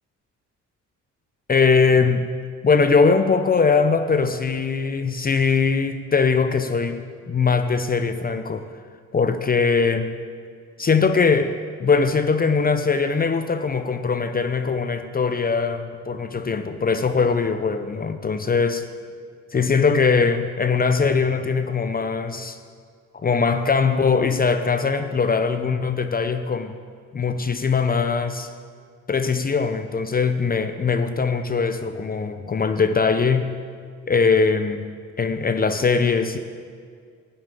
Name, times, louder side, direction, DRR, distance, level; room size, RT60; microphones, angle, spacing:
voice 1, 1.5-2.3 2.6-8.6 9.1-10.1 10.8-18.9 19.5-22.6 23.1-26.7 27.1-28.5 29.1-33.6 34.1-36.4, left 5 dB, 30° left, 9 dB, 0.7 m, -21 dB
12.5 x 7.2 x 9.0 m, 2.1 s
cardioid pair, 90°, 30 cm